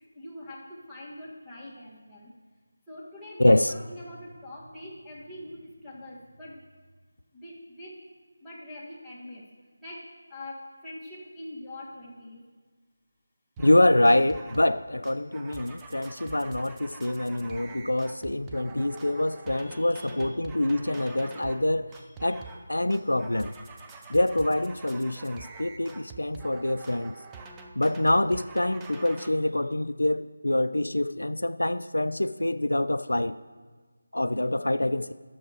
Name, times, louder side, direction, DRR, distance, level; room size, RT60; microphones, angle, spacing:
voice 1, 0.0-2.3 2.9-6.6 7.3-8.0 8.4-9.4 9.8-12.4 19.1-20.5 20.9-21.1 21.5-22.0 22.3-22.5, left 1 dB, 5° left, -9 dB, 1.8 m, -44 dB
voice 2, 3.4-3.7 13.6-21.9 22.2-23.5 24.1-27.1 27.8-33.3 34.1-35.1, left 1 dB, 85° left, 13 dB, 0.4 m, -25 dB
sound 1, 13.6-13.8 14.1-14.8 15.0-21.6 21.9-22.7 22.9-29.3, right 4 dB, 10° right, 0.6 m, -45 dB
11.0 x 7.0 x 4.8 m, 1.5 s
figure-of-eight pair, 165°, 0 cm